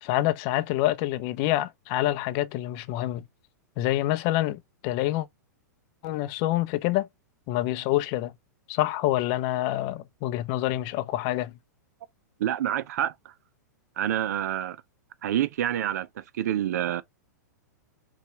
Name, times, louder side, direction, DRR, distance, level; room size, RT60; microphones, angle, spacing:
voice 1, 0.0-3.2 3.8-5.3 6.0-7.1 7.5-8.3 8.7-11.5, left 15 dB, 45° left, 0.6 m, -27 dB
voice 2, 12.4-13.1 14.0-14.8 15.2-17.0, right 11 dB, 60° right, 0.5 m, -27 dB
5.4 x 2.4 x 2.9 m
hypercardioid pair, 110°, 10 cm